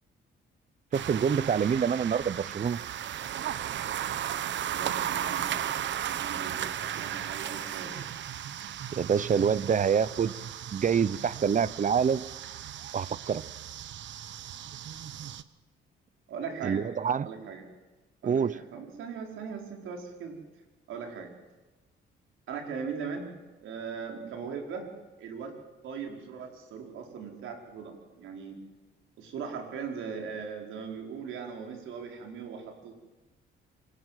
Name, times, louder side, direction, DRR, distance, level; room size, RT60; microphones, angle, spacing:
voice 1, 0.9-2.8 8.9-10.3 10.7-12.2 12.9-13.4 16.6-17.3 18.2-18.6, right 7 dB, 40° right, 19 dB, 0.9 m, -26 dB
sound 1, 0.9-15.4, right 10 dB, 65° right, 1.0 m, -35 dB
voice 2, 4.7-5.7 6.1-8.1 16.3-16.9 17.2-17.7 18.2-20.4 20.9-21.3 22.5-23.3 23.6-24.9 25.2-25.5 25.8-28.6 29.2-32.9, right 6 dB, 80° right, 2 dB, 5.1 m, -39 dB
24.5 x 19.5 x 7.7 m, 1.2 s
cardioid pair, 90°, 20 cm